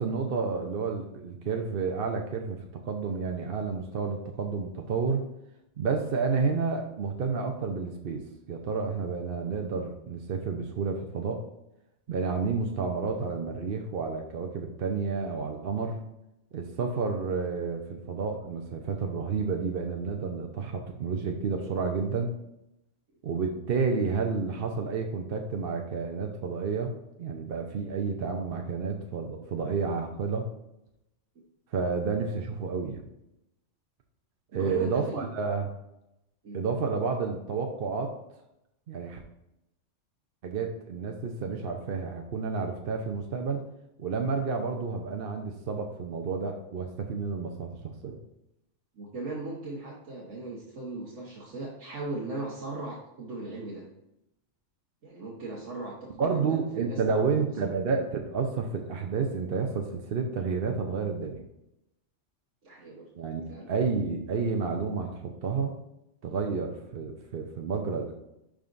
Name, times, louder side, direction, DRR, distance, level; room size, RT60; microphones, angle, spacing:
voice 1, 0.0-5.2 5.8-8.2 8.5-11.4 12.1-16.0 16.5-22.4 23.2-30.5 31.7-33.0 34.5-35.7 36.5-38.1 38.9-39.2 40.4-43.6 44.0-48.2 56.2-61.4 63.2-65.7 66.2-68.1, right 5 dB, 55° right, 2 dB, 0.9 m, -30 dB
voice 2, 34.5-35.3 36.4-36.6 49.0-53.8 55.0-57.2 62.6-63.1 63.5-63.7, right 2 dB, 90° right, -4 dB, 1.5 m, -38 dB
11.0 x 5.1 x 2.6 m, 0.85 s
omnidirectional pair, 1.3 m